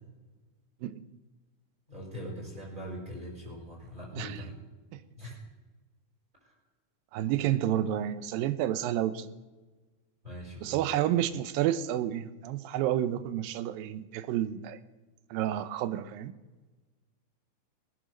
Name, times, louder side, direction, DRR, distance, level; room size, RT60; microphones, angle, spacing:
voice 1, 1.9-4.6 5.2-5.4 6.4-6.5 10.2-10.8, equal, 10° right, -3 dB, 5.1 m, -41 dB
voice 2, 7.1-9.3 10.6-14.8 15.3-16.3, right 12 dB, 80° right, 14 dB, 2.4 m, -30 dB
21.0 x 10.0 x 6.4 m, 1.2 s
omnidirectional pair, 4.3 m